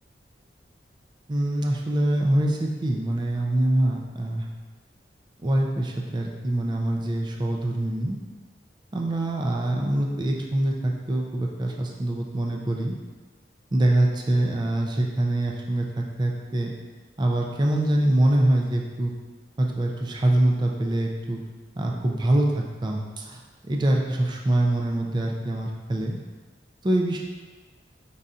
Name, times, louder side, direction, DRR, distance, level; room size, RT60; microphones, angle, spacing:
voice 1, 1.3-4.5 5.4-8.2 8.9-13.0 13.7-16.7 17.2-19.1 19.6-21.4 21.8-23.4 23.7-26.2 26.8-27.2, right 1 dB, 25° right, 0 dB, 0.4 m, -24 dB
5.4 x 3.9 x 2.4 m, 1.3 s
head